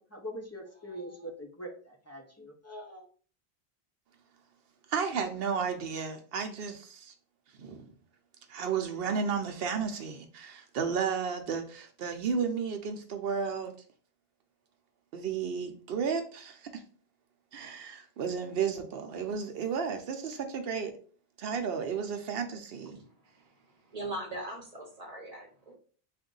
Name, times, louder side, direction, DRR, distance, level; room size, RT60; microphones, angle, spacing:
voice 1, 0.0-3.1, equal, 20° left, 0.6 m, -43 dB
voice 2, 4.9-7.1 7.6-7.9 8.5-13.7 15.1-16.8 17.5-20.9 21.4-23.0, right 6 dB, 65° right, 0.9 m, -33 dB
voice 3, 23.9-25.7, right 1 dB, 40° right, 0.9 m, -40 dB
3.6 x 2.6 x 3.8 m
omnidirectional pair, 1.1 m